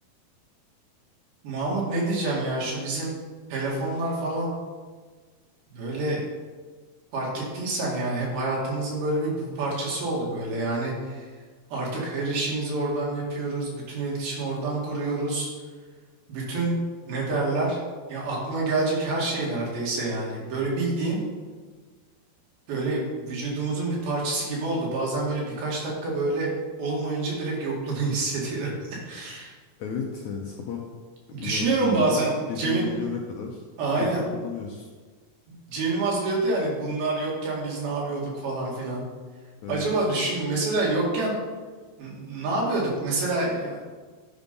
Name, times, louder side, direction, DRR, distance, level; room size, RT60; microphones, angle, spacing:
voice 1, 1.4-3.2 3.5-4.5 5.7-6.3 7.1-11.3 11.7-15.5 16.3-16.8 17.1-17.8 18.1-21.2 22.7-26.5 26.8-29.5 31.3-32.9 33.8-34.3 35.5-39.1 39.7-41.4 42.0-43.9, right 2 dB, 85° right, -4 dB, 4.1 m, -27 dB
voice 2, 29.8-30.9 31.3-32.2 32.5-33.6 34.0-34.9 39.6-39.9, left 6 dB, 75° left, 0 dB, 1.8 m, -34 dB
10.0 x 5.5 x 5.3 m, 1.4 s
omnidirectional pair, 4.2 m